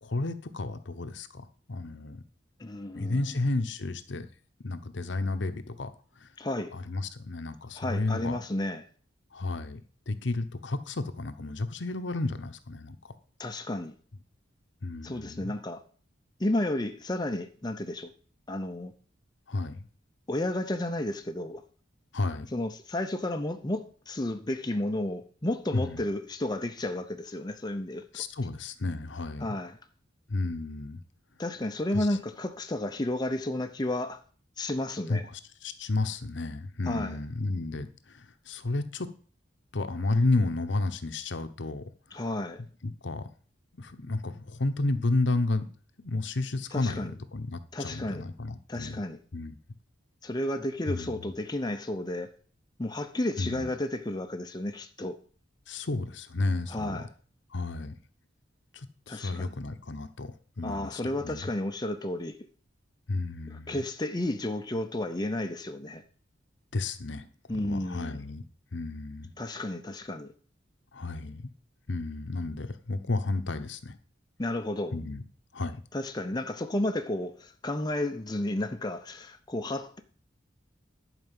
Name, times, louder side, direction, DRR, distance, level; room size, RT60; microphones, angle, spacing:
voice 1, 0.0-2.2 2.9-4.3 4.6-5.9 6.2-6.3 6.7-8.4 9.3-9.8 10.1-13.1 14.8-15.5 19.5-19.8 22.1-22.5 25.7-26.0 28.1-29.6 30.3-31.0 31.9-32.2 35.1-39.1 39.7-42.2 42.8-43.3 43.7-45.7 46.0-49.0 49.3-49.5 50.9-51.3 53.4-53.7 55.7-57.1 57.5-57.9 58.7-61.5 63.1-63.8 66.7-68.4 68.7-69.3 70.9-71.5 71.9-74.0 74.9-75.2 75.5-75.8, left 2 dB, 65° left, 0.9 m, -32 dB
voice 2, 2.6-3.2 6.4-6.7 7.7-8.8 13.4-13.9 15.0-15.8 16.4-18.1 18.5-18.9 20.3-21.6 22.5-28.2 29.4-29.8 31.4-34.2 34.6-35.2 36.9-37.2 42.1-42.6 46.7-47.1 47.7-48.2 48.7-49.2 50.2-52.3 52.8-55.2 56.7-57.1 59.1-59.5 60.6-62.4 63.5-66.0 67.5-68.2 69.4-70.3 74.4-74.9 75.9-80.0, left 1 dB, 20° left, 0.7 m, -32 dB
11.0 x 4.9 x 7.5 m
head